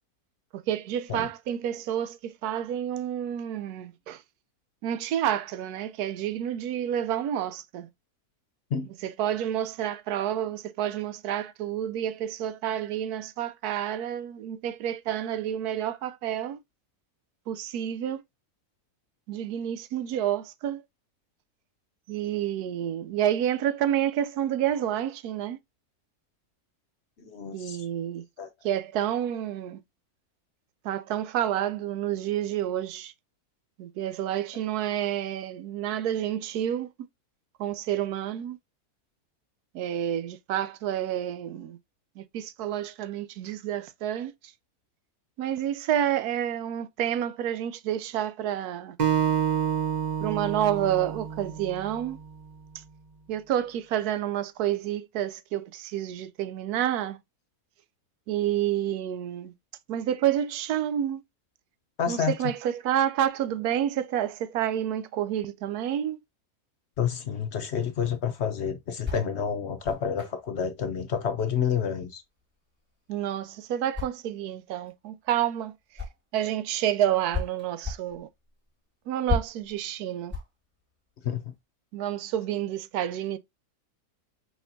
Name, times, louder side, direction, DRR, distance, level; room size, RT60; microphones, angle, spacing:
voice 1, 0.5-4.2 4.8-7.9 9.0-16.6 17.5-18.2 19.3-20.8 22.1-25.6 27.5-28.2 28.6-29.8 30.8-33.1 33.8-36.9 37.6-38.6 39.7-41.8 42.2-44.5 45.4-49.0 50.2-52.2 53.3-57.2 58.3-59.5 59.9-61.2 62.1-66.2 73.1-76.0 76.3-78.3 79.1-80.3 81.9-83.4, right 11 dB, 80° right, 1.1 m, -29 dB
voice 2, 27.2-27.9 28.4-28.5 62.0-62.4 67.0-72.2 81.2-81.5, left 7 dB, 55° left, 0.8 m, -29 dB
Acoustic guitar, 49.0-52.3, right 8 dB, 35° right, 0.7 m, -28 dB
sound 1, 68.2-76.5 76.8-81.6, left 5 dB, 5° right, 1.4 m, -37 dB
4.6 x 4.2 x 2.6 m
omnidirectional pair, 1.6 m